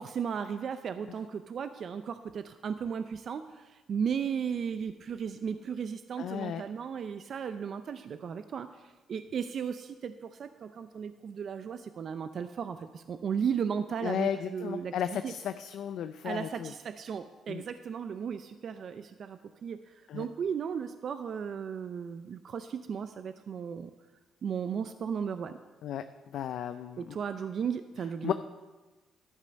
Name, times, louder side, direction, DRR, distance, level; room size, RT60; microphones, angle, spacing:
voice 1, 0.0-8.7 9.1-15.3 16.2-23.9 24.4-25.6 27.0-28.3, right 7 dB, 55° right, 10 dB, 0.4 m, -35 dB
voice 2, 6.2-6.6 14.0-16.7 17.5-17.6 20.1-20.3 25.8-26.0 26.3-27.2 28.2-28.3, left 9 dB, 75° left, 10 dB, 0.4 m, -34 dB
12.5 x 5.4 x 6.3 m, 1.2 s
cardioid pair, 90°, 0 cm